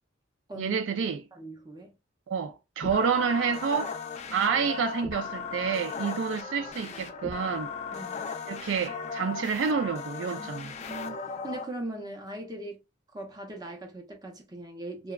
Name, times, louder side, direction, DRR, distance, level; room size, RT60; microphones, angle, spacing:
voice 1, 0.6-1.2 2.3-3.9 4.3-7.7 8.5-10.7, right 6 dB, 85° right, 0.3 m, -28 dB
voice 2, 1.3-1.9 4.3-5.0 7.9-8.2 10.4-12.8 13.1-15.1, right 1 dB, 20° right, 0.6 m, -40 dB
sound 1, 2.8-11.6, left 5 dB, 35° left, 0.3 m, -37 dB
2.8 x 2.2 x 2.3 m
head